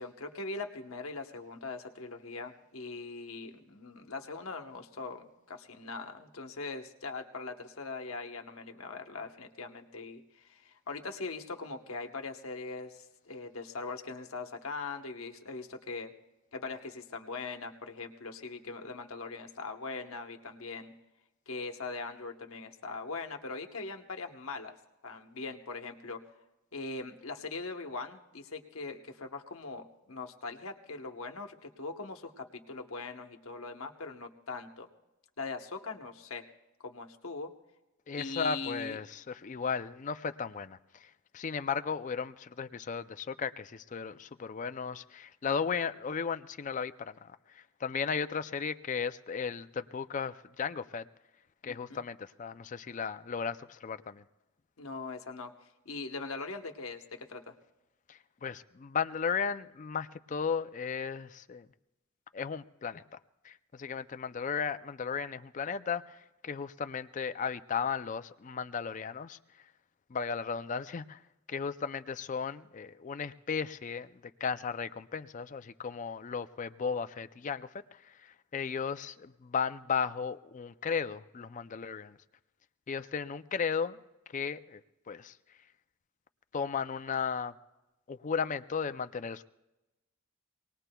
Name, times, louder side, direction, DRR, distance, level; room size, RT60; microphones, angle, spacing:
voice 1, 0.0-16.1 16.5-20.9 21.5-24.7 25.0-26.2 26.7-34.9 35.4-36.4 36.8-37.5 38.2-39.0 51.7-52.0 54.8-57.5, left 3 dB, 70° left, 1.0 m, -41 dB
voice 2, 38.1-51.1 51.6-54.2 58.1-61.7 62.3-63.0 63.4-66.2 66.4-69.4 70.1-71.2 71.5-74.1 74.4-82.2 82.9-84.0 84.3-84.8 85.1-85.3 86.5-87.5 88.1-89.4, left 6 dB, 35° left, 0.4 m, -35 dB
25.5 x 19.0 x 2.3 m
head